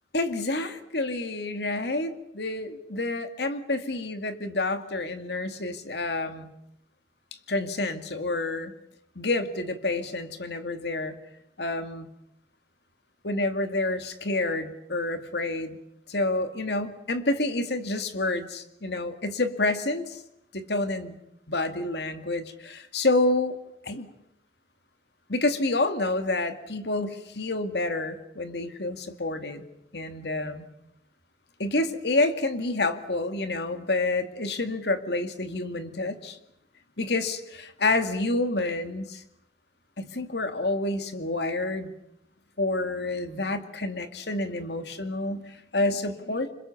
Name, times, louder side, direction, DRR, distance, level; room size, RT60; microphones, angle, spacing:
voice 1, 0.1-6.5 7.5-8.7 9.2-11.2 11.6-12.1 13.2-15.8 16.1-20.2 20.5-21.1 21.5-23.6 23.8-24.1 25.3-29.6 29.9-30.7 31.6-36.4 37.0-39.2 40.0-41.9 42.6-46.5, left 2 dB, 70° left, 8 dB, 2.2 m, -28 dB
27.5 x 25.5 x 7.2 m, 0.83 s
head